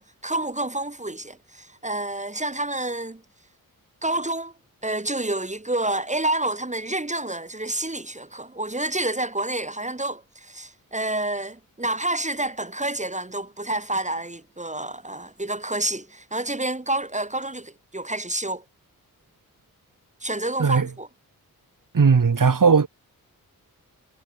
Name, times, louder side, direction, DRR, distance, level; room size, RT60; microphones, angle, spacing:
voice 1, 0.0-3.2 4.0-4.5 4.8-18.6 20.2-21.1, right 2 dB, 20° right, 5.8 m, -29 dB
voice 2, 20.6-20.9 21.9-22.9, right 5 dB, 60° right, 5.7 m, -17 dB
wide cardioid pair, 105°, 36 cm